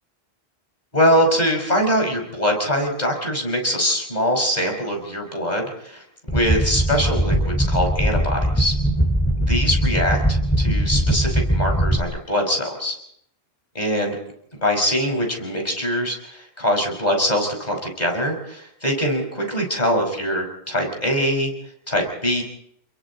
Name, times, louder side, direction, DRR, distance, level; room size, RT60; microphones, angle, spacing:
voice 1, 0.9-8.7 9.5-13.0 13.7-14.2 14.6-21.5 21.9-22.4, equal, 40° left, 2 dB, 5.6 m, -23 dB
sound 1, 6.3-12.0, right 1 dB, 10° left, 2.3 m, -20 dB
30.0 x 22.0 x 4.2 m, 0.68 s
omnidirectional pair, 1.1 m